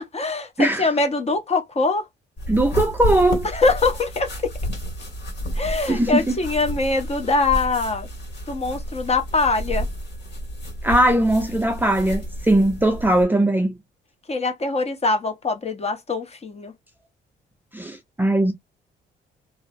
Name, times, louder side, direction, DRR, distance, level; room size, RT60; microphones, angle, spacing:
voice 1, 0.1-2.1 3.5-4.5 5.6-8.1 8.5-9.9 14.3-16.7, left 3 dB, 30° left, 0.8 m, -23 dB
sound 1, 2.4-13.2, equal, 60° left, 1.8 m, -30 dB
voice 2, 2.5-3.5 5.9-6.4 10.8-13.8 17.7-18.5, right 1 dB, 10° right, 0.5 m, -19 dB
2.7 x 2.0 x 2.6 m
cardioid pair, 90°, 20 cm